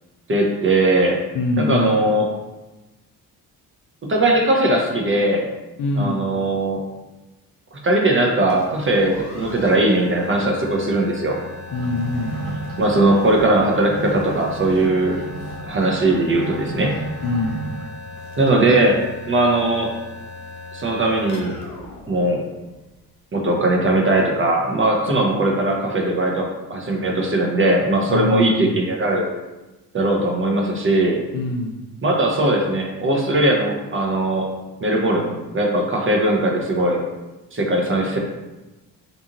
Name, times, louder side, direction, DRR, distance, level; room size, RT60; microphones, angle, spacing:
voice 1, 0.3-1.2 1.6-2.3 4.1-5.5 6.0-6.8 7.8-11.4 12.8-15.2 15.7-17.0 18.4-19.0 19.3-19.9 20.7-21.6 22.1-22.4 23.3-29.3 29.9-31.2 32.0-34.5 34.8-37.0 37.5-38.2, right 1 dB, 25° right, 0 dB, 0.7 m, -19 dB
voice 2, 1.3-2.0 5.8-6.2 11.7-12.4 17.2-17.6 28.1-28.7 31.3-31.8, left 3 dB, 45° left, 2 dB, 0.5 m, -23 dB
sound 1, 8.4-23.0, left 2 dB, 80° left, 0.8 m, -38 dB
sound 2, 11.7-17.9, right 2 dB, 80° right, 1.0 m, -33 dB
2.6 x 2.4 x 2.8 m, 1.1 s
hypercardioid pair, 45°, 47 cm